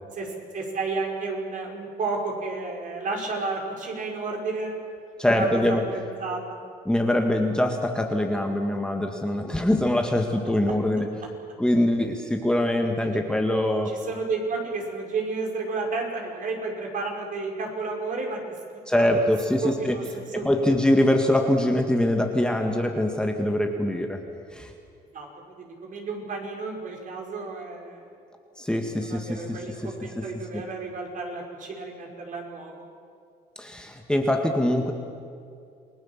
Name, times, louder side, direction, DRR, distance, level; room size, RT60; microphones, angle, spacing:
voice 1, 0.1-4.7 5.2-6.4 9.6-9.7 13.9-18.4 18.7-18.8 19.1-19.3 19.6-20.7 25.1-28.0 29.1-32.8, right 3 dB, 50° right, 0 dB, 5.8 m, -32 dB
voice 2, 5.2-5.9 6.9-11.2 11.6-14.0 18.9-20.0 20.3-24.2 24.5-24.7 28.6-30.6 33.6-34.9, left 1 dB, 5° left, 3 dB, 1.9 m, -24 dB
28.5 x 20.0 x 7.5 m, 2.4 s
cardioid pair, 110°, 17 cm